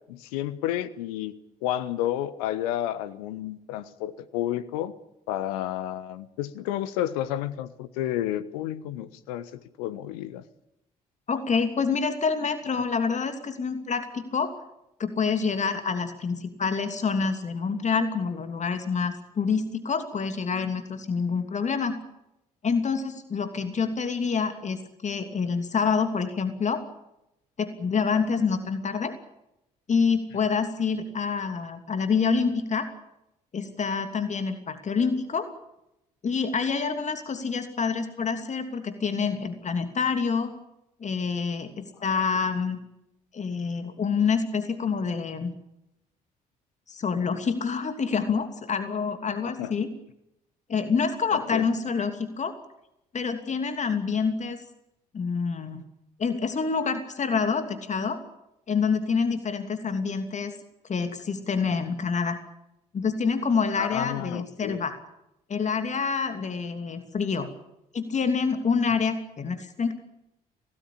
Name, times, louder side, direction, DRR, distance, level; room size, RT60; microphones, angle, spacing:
voice 1, 0.1-1.3 1.6-4.9 5.3-9.5 9.8-10.4 49.4-49.7 51.3-51.7 63.8-64.8, left 12 dB, 70° left, 15 dB, 1.3 m, -31 dB
voice 2, 11.3-14.5 15.0-21.9 22.6-26.8 27.6-29.1 29.9-32.9 33.5-35.5 36.2-40.5 41.0-42.8 43.3-45.5 46.9-49.9 50.7-52.5 53.1-54.6 55.1-55.8 56.2-58.2 58.7-60.5 60.9-62.4 62.9-65.0 65.5-67.5 67.9-69.9, left 5 dB, 35° left, 8 dB, 2.9 m, -27 dB
25.5 x 18.5 x 8.8 m, 0.86 s
figure-of-eight pair, 50°, 20 cm